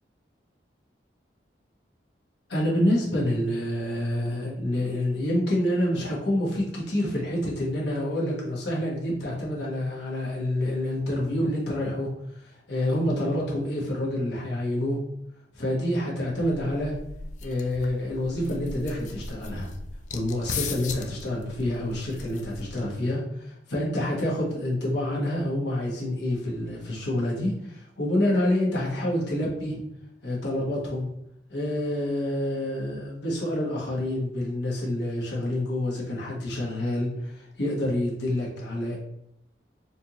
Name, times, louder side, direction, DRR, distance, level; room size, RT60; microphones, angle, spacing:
voice 1, 2.5-12.1 12.7-15.0 15.5-16.9 17.4-19.7 20.1-29.8 30.2-31.1 31.5-39.0, left 1 dB, 75° left, -4 dB, 1.3 m, -27 dB
sound 1, 16.3-23.0, left 4 dB, 45° left, 0.3 m, -38 dB
4.3 x 2.6 x 2.9 m, 0.79 s
head